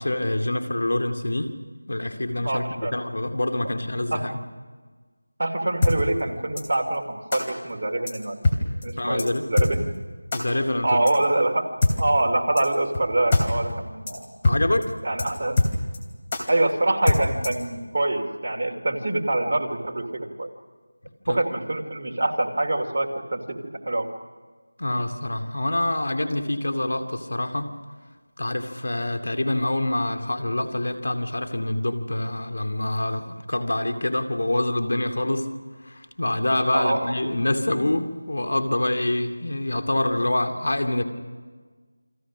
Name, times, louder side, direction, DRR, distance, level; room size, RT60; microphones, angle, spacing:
voice 1, 0.0-1.6 1.9-4.4 9.0-9.5 10.3-11.0 14.4-14.9 21.2-21.4 24.8-27.8 28.4-35.5 35.8-41.0, left 1 dB, 60° left, 7 dB, 2.5 m, -26 dB
voice 2, 2.4-2.9 4.1-4.3 5.4-8.4 8.8-9.9 10.8-11.7 12.0-14.3 15.0-15.6 16.5-20.5 21.3-23.6 23.9-24.1 36.7-37.1, right 1 dB, 40° right, 2 dB, 2.7 m, -25 dB
sound 1, 5.8-5.9 6.6-6.7 7.3-7.4 8.1-8.2 8.4-8.6 8.8-8.9 9.2-9.3 9.6-9.7 10.3-10.4 11.1-11.2 11.8-11.9 12.6-12.7 12.9-13.0 13.3-13.4 13.7-13.8 14.1-14.2 14.4-14.6 14.8-14.9 15.2-15.3 15.6-16.0 16.3-16.4 17.1-17.6, left 2 dB, 20° left, 2.9 m, -21 dB
29.0 x 25.0 x 6.3 m, 1.5 s
figure-of-eight pair, 175°, 0 cm